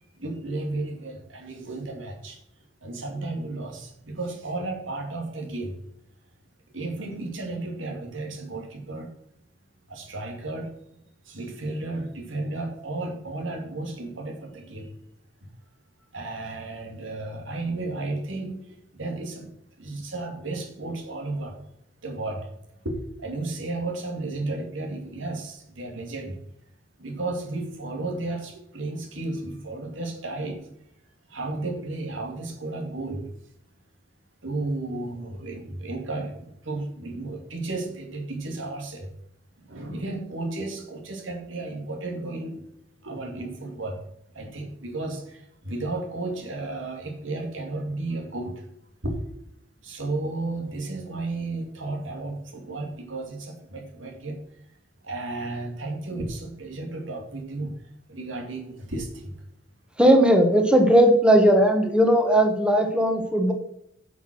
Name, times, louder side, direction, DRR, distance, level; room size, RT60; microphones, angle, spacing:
voice 1, 0.1-2.4 2.8-5.8 6.7-9.1 9.9-10.8 11.2-15.0 15.4-15.5 16.1-21.6 22.0-22.5 22.8-26.4 27.0-30.7 31.3-33.3 34.4-39.1 39.6-42.7 43.0-44.0 44.3-48.6 49.0-49.2 49.8-54.4 55.0-59.4, right 2 dB, 85° right, 2 dB, 2.5 m, -33 dB
voice 2, 60.0-63.5, equal, 5° right, 4 dB, 1.2 m, -18 dB
10.5 x 6.0 x 6.2 m, 0.76 s
head